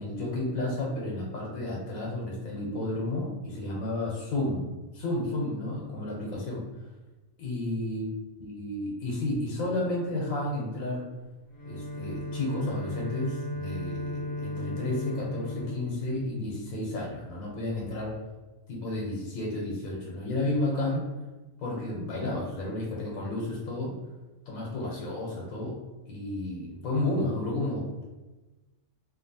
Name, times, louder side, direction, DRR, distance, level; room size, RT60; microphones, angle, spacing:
voice 1, 0.0-4.7 4.9-6.7 7.4-8.1 8.4-11.0 11.7-18.2 18.7-21.1 21.6-23.9 24.5-25.8 26.1-28.0, left 1 dB, 85° left, -3 dB, 1.1 m, -32 dB
Bowed string instrument, 11.5-17.1, left 1 dB, 50° left, 0.9 m, -36 dB
2.8 x 2.4 x 2.6 m, 1.1 s
omnidirectional pair, 1.4 m